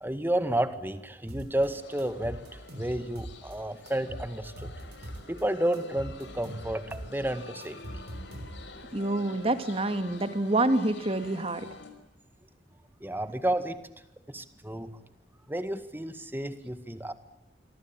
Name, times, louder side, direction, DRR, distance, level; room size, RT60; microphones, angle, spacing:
voice 1, 0.0-2.5 2.7-4.7 5.3-8.0 13.0-13.8 14.3-15.0 15.5-17.1, right 1 dB, 10° right, 10 dB, 1.9 m, -31 dB
sound 1, 1.3-1.7 2.0-3.6 3.9-5.4 5.7-8.8, right 1 dB, 60° right, 6.5 m, -42 dB
sound 2, 1.6-11.9, left 2 dB, 80° left, 5.3 m, -48 dB
voice 2, 8.9-11.7, right 2 dB, 30° right, 9 dB, 2.2 m, -27 dB
27.5 x 24.0 x 9.0 m, 0.87 s
head